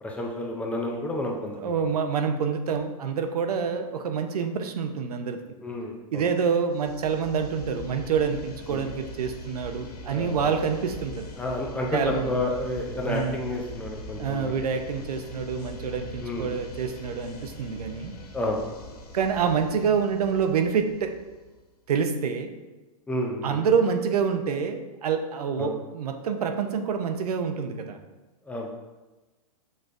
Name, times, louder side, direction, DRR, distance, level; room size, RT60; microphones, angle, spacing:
voice 1, 0.0-1.9 5.6-6.3 8.7-8.8 10.1-10.6 11.4-14.5 16.2-16.5 18.3-18.9 23.1-23.6 25.6-25.7 28.5-28.7, left 1 dB, 5° left, 0 dB, 0.3 m, -30 dB
voice 2, 1.6-5.4 6.1-11.2 11.9-12.3 13.1-13.4 14.2-18.1 19.1-21.1 21.9-22.6 23.4-28.0, right 6 dB, 80° right, 6 dB, 0.6 m, -27 dB
sound 1, 6.7-21.6, left 1 dB, 85° left, 0.9 m, -42 dB
6.4 x 3.3 x 2.5 m, 1.2 s
hypercardioid pair, 140°, 19 cm